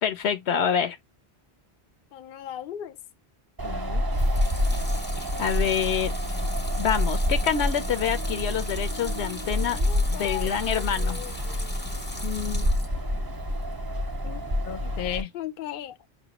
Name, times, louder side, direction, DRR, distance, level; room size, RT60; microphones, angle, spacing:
voice 1, 0.0-1.0 5.4-6.1 6.8-9.8 10.1-11.2, left 8 dB, 85° left, 1.0 m, -26 dB
voice 2, 2.1-3.0 3.6-4.0 9.6-11.7 12.2-12.7 14.2-16.0, left 11 dB, 60° left, 0.7 m, -36 dB
Wind, 3.6-15.2, equal, 25° right, 0.7 m, -28 dB
Water tap faucet / Sink (filling or washing) / Liquid, 4.1-13.0 13.4-14.1, left 2 dB, 15° left, 0.6 m, -40 dB
5.4 x 2.7 x 2.9 m
omnidirectional pair, 1.1 m